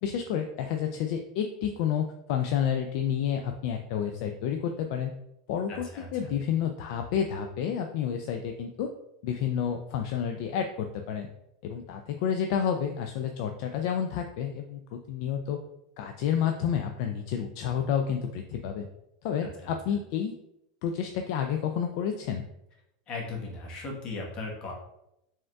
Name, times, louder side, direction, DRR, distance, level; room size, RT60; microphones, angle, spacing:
voice 1, 0.0-5.1 5.5-8.9 9.2-11.3 11.6-15.6 16.0-18.9 19.2-20.4 20.8-22.5, left 8 dB, 55° left, 5 dB, 0.3 m, -30 dB
voice 2, 5.7-6.3 19.6-19.7 23.1-24.7, left 3 dB, 35° left, -1 dB, 1.1 m, -37 dB
5.1 x 3.5 x 2.3 m, 0.83 s
supercardioid pair, 150°, 3 cm